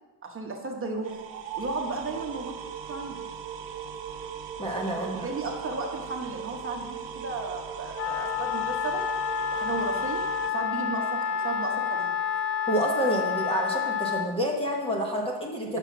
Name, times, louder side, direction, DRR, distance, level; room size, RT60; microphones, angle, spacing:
voice 1, 0.2-1.2 1.6-2.5 2.9-3.2 4.9-9.0 9.5-10.2 10.5-12.2 15.7-15.8, right 3 dB, 25° right, 1 dB, 1.0 m, -34 dB
sound 1, 1.0-10.5, right 8 dB, 65° right, 0.9 m, -38 dB
voice 2, 4.6-5.3 12.7-15.8, right 1 dB, 10° left, -1 dB, 0.8 m, -28 dB
Wind instrument woodwind instrument, 7.9-14.3, left 7 dB, 85° left, 0.8 m, -29 dB
7.6 x 5.8 x 5.9 m, 1.2 s
cardioid pair, 165°, 47 cm